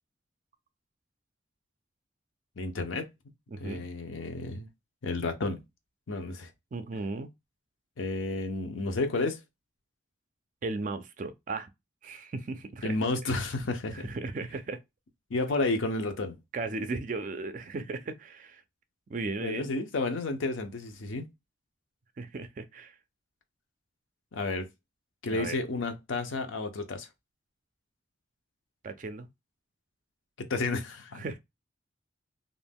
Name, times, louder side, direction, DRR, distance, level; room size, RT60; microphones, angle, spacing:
voice 1, 2.6-3.1 3.6-4.7 5.0-5.6 6.1-6.5 8.0-9.4 12.8-14.1 15.3-16.4 19.4-21.3 24.3-24.7 25.2-27.1 30.4-31.2, left 3 dB, 90° left, 0.6 m, -31 dB
voice 2, 3.5-3.8 6.7-7.3 10.6-11.7 12.0-13.0 13.9-14.8 16.5-18.6 19.1-19.7 22.2-23.0 25.3-25.6 28.8-29.3 31.1-31.4, right 3 dB, 40° right, 0.3 m, -36 dB
2.5 x 2.2 x 3.4 m
head